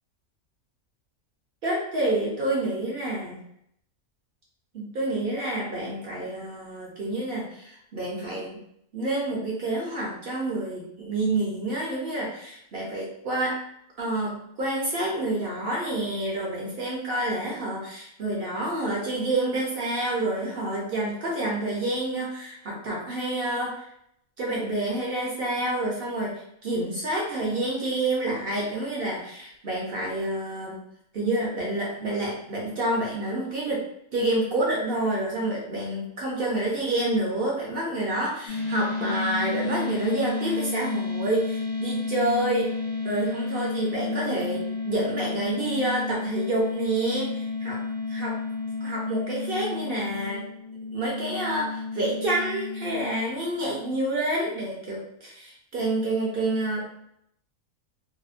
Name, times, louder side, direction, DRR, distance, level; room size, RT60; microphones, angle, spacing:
voice 1, 1.6-3.4 4.7-8.6 8.9-13.6 14.0-23.9 24.4-30.8 31.1-33.8 34.1-42.7 43.0-47.8 48.1-48.4 48.8-50.5 50.9-56.9, right 1 dB, 55° right, -4 dB, 0.7 m, -28 dB
sound 1, 38.5-54.0, left 4 dB, 75° left, 1.1 m, -31 dB
2.7 x 2.0 x 2.4 m, 0.74 s
omnidirectional pair, 1.4 m